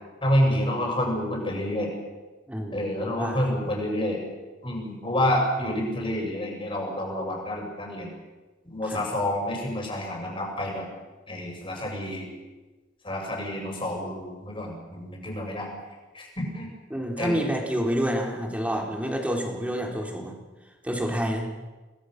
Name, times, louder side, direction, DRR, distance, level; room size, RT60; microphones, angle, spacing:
voice 1, 0.2-1.9 2.7-4.2 4.6-8.1 8.7-10.9 11.3-12.3 13.0-15.7 16.1-16.7 17.2-17.4, left 1 dB, 30° left, 0 dB, 6.9 m, -28 dB
voice 2, 2.5-3.5 8.9-9.0 16.9-20.3 20.8-21.5, equal, 10° right, 1 dB, 3.8 m, -28 dB
27.5 x 19.5 x 6.7 m, 1.2 s
head